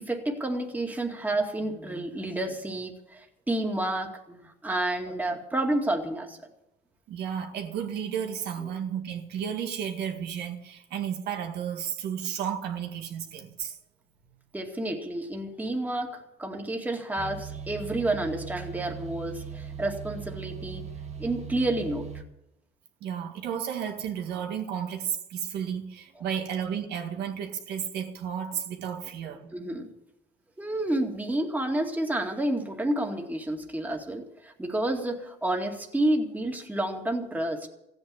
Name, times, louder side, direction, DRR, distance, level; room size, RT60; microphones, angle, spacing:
voice 1, 0.0-6.4 8.6-8.7 14.5-20.8 21.2-22.1 26.2-26.3 29.5-29.9 30.6-37.7, right 1 dB, 10° right, 2 dB, 2.2 m, -30 dB
voice 2, 7.1-13.8 23.0-29.5, right 8 dB, 75° right, 3 dB, 1.9 m, -33 dB
sound 1, 17.2-22.2, right 7 dB, 40° right, 1.4 m, -39 dB
15.5 x 9.1 x 8.5 m, 0.86 s
cardioid pair, 110°, 17 cm